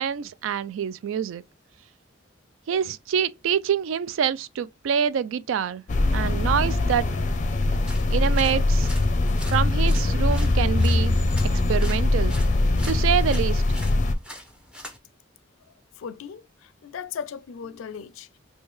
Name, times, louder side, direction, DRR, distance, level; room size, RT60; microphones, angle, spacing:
voice 1, 0.0-1.4 2.7-5.8 6.1-7.1 8.1-8.9 9.5-11.2 11.5-12.4 12.8-13.6, right 8 dB, 75° right, 0.3 m, -26 dB
sound 1, 5.9-14.1, left 2 dB, 40° left, 0.5 m, -22 dB
sound 2, 7.9-15.0, equal, 5° right, 0.7 m, -43 dB
voice 2, 16.0-18.4, left 7 dB, 90° left, 0.4 m, -37 dB
4.4 x 2.2 x 3.1 m
head